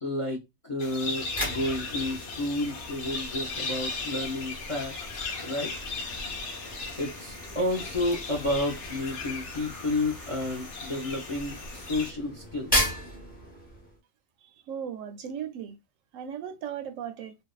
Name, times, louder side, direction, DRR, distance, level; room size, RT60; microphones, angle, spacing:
voice 1, 0.0-5.7 7.0-13.0, left 1 dB, 35° left, 0.5 m, -31 dB
sound 1, 0.8-12.1, left 3 dB, 70° left, 0.8 m, -37 dB
sound 2, 1.0-14.0, left 1 dB, 10° left, 0.8 m, -37 dB
sound 3, 2.8-12.0, equal, 20° right, 0.6 m, -47 dB
voice 2, 14.4-15.8 16.1-17.3, right 8 dB, 80° right, 1.0 m, -37 dB
2.6 x 2.2 x 2.3 m
omnidirectional pair, 1.4 m